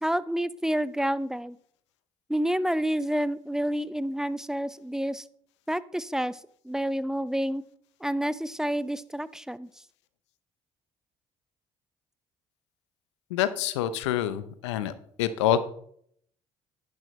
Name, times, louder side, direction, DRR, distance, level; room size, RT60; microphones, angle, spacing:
voice 1, 0.0-1.6 2.3-5.3 5.7-6.4 6.6-7.6 8.0-9.7, equal, 5° right, 17 dB, 0.6 m, -29 dB
voice 2, 13.3-14.9 15.2-15.6, left 11 dB, 85° left, 13 dB, 0.7 m, -26 dB
10.5 x 10.0 x 3.1 m, 0.65 s
hypercardioid pair, 55°, 15 cm